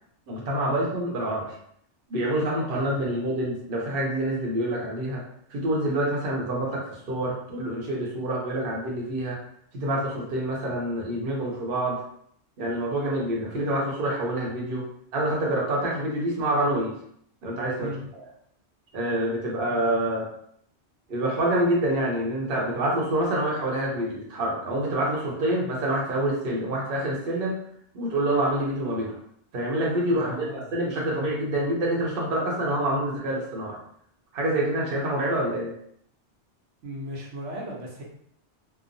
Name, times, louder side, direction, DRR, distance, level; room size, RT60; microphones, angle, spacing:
voice 1, 0.3-1.5 2.1-5.2 5.5-9.4 9.7-12.0 12.6-14.9 15.1-16.9 17.4-18.2 18.9-20.3 21.1-27.6 27.9-29.1 29.5-33.8 34.3-35.7, right 1 dB, 55° right, -3 dB, 0.8 m, -27 dB
voice 2, 2.7-3.2 17.8-18.0 30.2-30.7 36.8-38.0, equal, 85° right, -4 dB, 1.1 m, -37 dB
2.9 x 2.1 x 2.5 m, 0.68 s
omnidirectional pair, 1.2 m